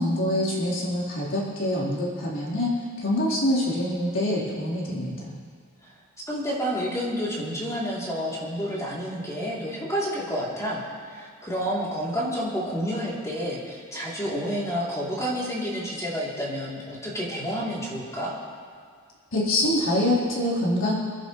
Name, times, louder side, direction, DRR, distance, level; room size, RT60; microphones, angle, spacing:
voice 1, 0.0-5.3 19.3-20.9, left 1 dB, 60° left, -6 dB, 4.2 m, -25 dB
voice 2, 6.3-18.3, equal, 15° left, -7 dB, 3.4 m, -29 dB
29.0 x 11.0 x 3.3 m, 2.1 s
head